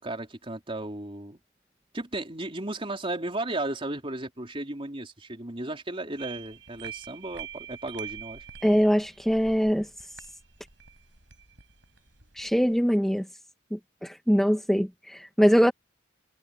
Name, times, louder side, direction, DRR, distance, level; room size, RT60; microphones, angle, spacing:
voice 1, 0.0-1.4 1.9-8.5, right 2 dB, 30° right, 3.8 m, -34 dB
sound 1, 6.2-12.8, right 9 dB, 70° right, 7.7 m, -45 dB
voice 2, 8.6-9.9 12.4-13.3 13.7-15.7, equal, ahead, 1.7 m, -23 dB
head